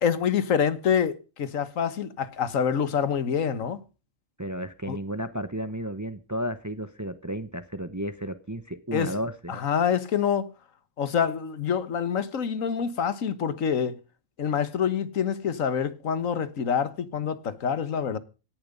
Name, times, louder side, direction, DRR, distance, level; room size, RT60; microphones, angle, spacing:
voice 1, 0.0-3.8 4.9-5.0 8.9-9.2 9.5-10.5 11.0-14.0 14.4-18.2, left 7 dB, 85° left, 1.6 m, -26 dB
voice 2, 4.4-9.6, equal, 15° right, 0.8 m, -33 dB
17.0 x 10.5 x 5.3 m
omnidirectional pair, 1.3 m